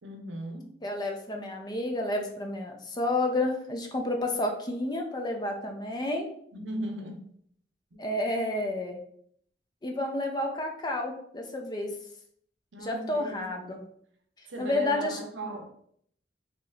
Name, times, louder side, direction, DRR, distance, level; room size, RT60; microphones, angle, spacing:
voice 1, 0.0-0.7 6.5-7.3 8.0-8.1 12.7-13.7 14.5-15.7, right 1 dB, 90° right, 0.7 m, -38 dB
voice 2, 0.8-6.3 8.0-9.0 9.8-11.9 12.8-13.8 14.6-15.2, left 2 dB, 25° left, 0.5 m, -30 dB
2.9 x 2.5 x 4.0 m
head